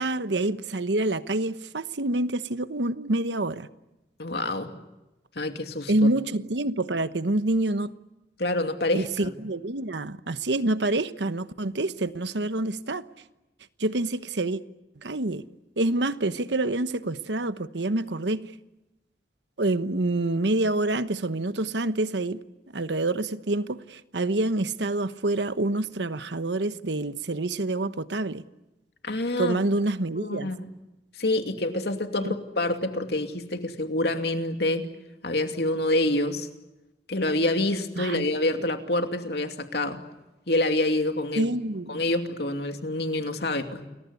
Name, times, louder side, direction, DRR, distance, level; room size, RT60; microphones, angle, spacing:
voice 1, 0.0-3.7 5.9-7.9 8.9-13.0 13.8-14.6 15.0-15.4 15.8-18.5 19.6-22.4 22.7-28.4 29.4-30.5 32.2-32.3 38.0-38.2 41.4-42.0, right 2 dB, 80° right, 1.1 m, -27 dB
voice 2, 4.2-4.7 5.4-6.1 8.4-9.3 29.0-29.6 30.2-30.7 31.2-34.9 35.2-36.5 37.1-40.0 40.5-41.5 41.9-43.9, left 1 dB, 65° left, 2.7 m, -27 dB
29.5 x 22.0 x 8.3 m
head